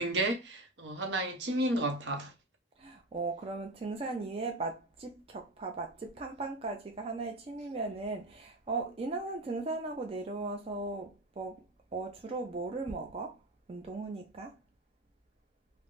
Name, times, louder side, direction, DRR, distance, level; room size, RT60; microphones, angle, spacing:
voice 1, 0.0-2.3, right 1 dB, 75° right, 0.7 m, -32 dB
voice 2, 2.8-11.6 11.9-13.4 13.7-14.5, right 3 dB, 30° right, 0.3 m, -37 dB
3.3 x 2.0 x 2.4 m
head